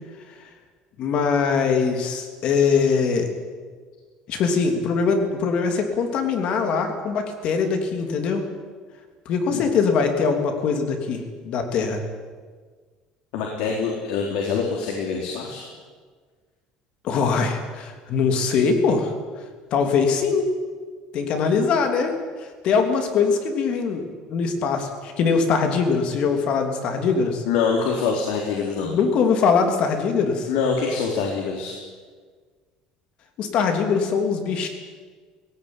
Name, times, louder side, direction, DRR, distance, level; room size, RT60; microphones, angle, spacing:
voice 1, 1.0-3.3 4.3-8.4 9.2-12.0 17.0-19.1 19.7-20.5 21.1-22.1 22.4-24.0 24.3-27.4 28.8-30.5 33.4-34.7, left 5 dB, 45° left, 5 dB, 3.2 m, -22 dB
voice 2, 13.3-15.6 27.5-28.9 30.5-31.7, left 5 dB, 90° left, -1 dB, 4.0 m, -25 dB
17.5 x 17.5 x 9.9 m, 1.5 s
cardioid pair, 165°, 2 cm